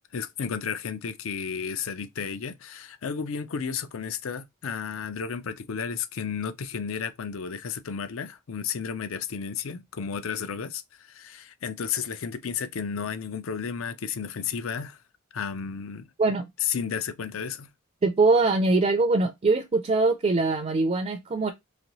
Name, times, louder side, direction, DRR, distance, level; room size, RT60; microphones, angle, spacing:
voice 1, 0.1-15.0 15.3-16.1 16.6-17.7, left 6 dB, 70° left, 0.5 m, -32 dB
voice 2, 18.0-21.5, right 3 dB, 30° right, 0.4 m, -22 dB
4.0 x 3.0 x 3.0 m
head